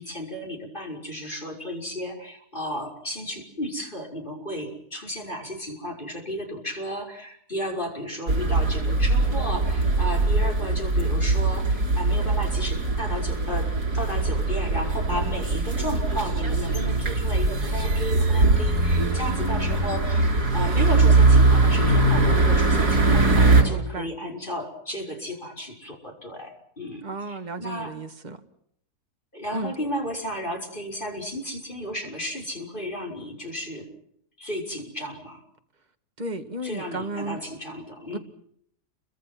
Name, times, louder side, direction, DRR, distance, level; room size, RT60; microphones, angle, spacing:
voice 1, 0.0-27.9 29.3-33.9 34.4-35.4 36.6-38.2, equal, 30° left, 1 dB, 6.1 m, -33 dB
sound 1, 8.3-23.6, right 3 dB, 80° right, 4.7 m, -21 dB
voice 2, 23.6-24.1 27.0-28.4 29.5-29.7 36.2-37.4 38.1-38.2, right 2 dB, 25° right, 6 dB, 2.0 m, -33 dB
30.0 x 24.5 x 6.1 m, 0.68 s
omnidirectional pair, 1.7 m